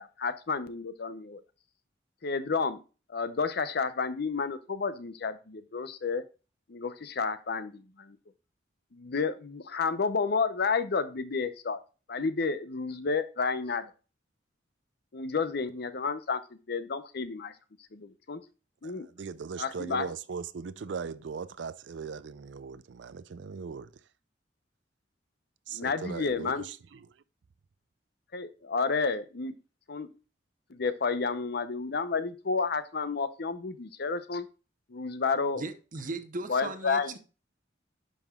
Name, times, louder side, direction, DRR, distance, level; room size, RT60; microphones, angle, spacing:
voice 1, 0.0-1.4 2.2-2.8 3.1-6.2 6.7-8.2 8.9-11.8 12.1-13.9 15.1-16.4 16.7-17.5 17.9-18.4 18.8-19.1 19.6-20.1 25.7-26.7 28.3-29.6 29.9-30.1 30.7-34.5 34.9-35.6 36.5-37.1, left 4 dB, 60° left, 0.7 m, -31 dB
voice 2, 18.8-23.9 25.7-27.0, right 5 dB, 75° right, 0.4 m, -39 dB
voice 3, 35.5-37.2, right 3 dB, 45° right, 0.8 m, -37 dB
10.5 x 5.7 x 2.3 m
head